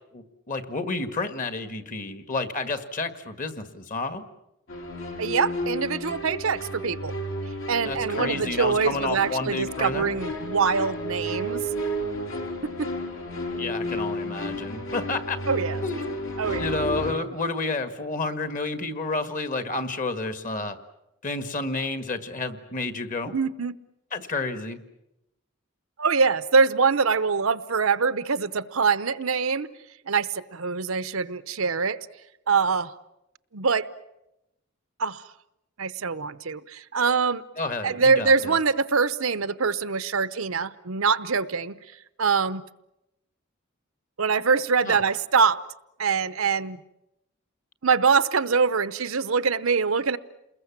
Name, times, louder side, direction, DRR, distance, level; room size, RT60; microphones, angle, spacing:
voice 1, 0.1-4.2 7.8-10.2 13.5-15.4 15.8-16.0 16.6-20.8 21.2-23.3 24.1-24.8 37.6-38.5 44.9-45.0, left 3 dB, 40° left, 9 dB, 1.8 m, -30 dB
sound 1, 4.7-17.1, equal, 70° left, 3.8 m, -32 dB
voice 2, 5.2-7.1 7.7-11.6 12.8-12.9 15.5-15.9 16.4-16.7 23.3-23.7 26.0-29.7 30.1-32.0 32.5-32.9 33.5-33.9 35.0-35.2 35.8-37.4 37.8-41.8 42.2-42.6 44.2-45.7 46.0-46.8 47.8-50.2, right 5 dB, 80° right, 14 dB, 0.9 m, -24 dB
29.0 x 21.5 x 7.4 m, 0.87 s
head